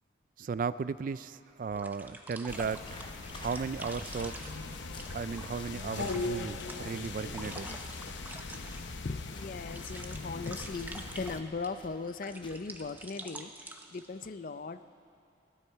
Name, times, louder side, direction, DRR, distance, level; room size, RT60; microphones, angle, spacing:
voice 1, 0.4-3.0 3.3-4.5 5.1-7.7, right 5 dB, 45° right, 15 dB, 0.3 m, -36 dB
sound 1, 0.9-1.0 1.7-9.0 9.4-11.7 12.1-14.3, right 2 dB, 10° right, 0.7 m, -47 dB
sound 2, 2.5-11.4, left 3 dB, 80° left, 0.8 m, -40 dB
sound 3, 2.8-13.1, left 2 dB, 25° left, 0.9 m, -54 dB
voice 2, 8.7-14.8, left 4 dB, 45° left, 12 dB, 0.5 m, -39 dB
29.5 x 9.9 x 4.6 m, 2.6 s
head